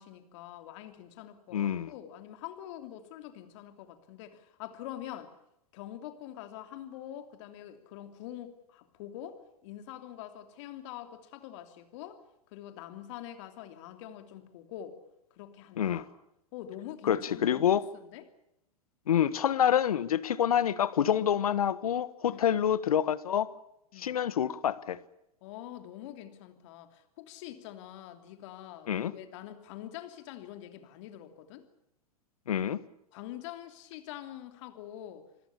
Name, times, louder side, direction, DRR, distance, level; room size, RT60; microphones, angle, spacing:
voice 1, 0.0-5.3 5.7-12.2 12.5-15.0 15.3-16.1 16.5-17.7 17.9-18.3 22.3-22.5 23.9-24.1 25.4-31.7 33.1-35.2, left 12 dB, 50° left, 3.0 m, -45 dB
voice 2, 1.5-1.9 15.8-16.0 17.1-17.9 19.1-23.5 24.0-25.0 28.9-29.1 32.5-32.8, left 9 dB, 70° left, 1.4 m, -27 dB
28.0 x 20.5 x 7.1 m
hypercardioid pair, 105°, 19 cm